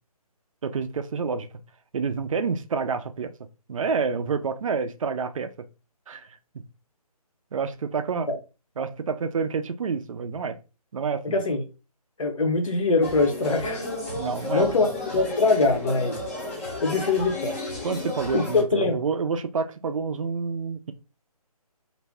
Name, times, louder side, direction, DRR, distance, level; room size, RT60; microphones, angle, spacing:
voice 1, 0.6-1.5 1.9-3.3 3.7-5.5 6.1-6.6 7.5-8.3 8.8-10.6 10.9-11.4 14.1-14.9 17.8-20.9, right 5 dB, 55° right, 0.4 m, -28 dB
voice 2, 11.2-11.6 12.2-13.9 14.5-16.2 16.8-17.5 18.3-18.9, left 3 dB, 55° left, 0.7 m, -23 dB
sound 1, 13.0-18.6, left 2 dB, 20° left, 0.6 m, -32 dB
2.5 x 2.1 x 3.4 m
figure-of-eight pair, 155°, 20 cm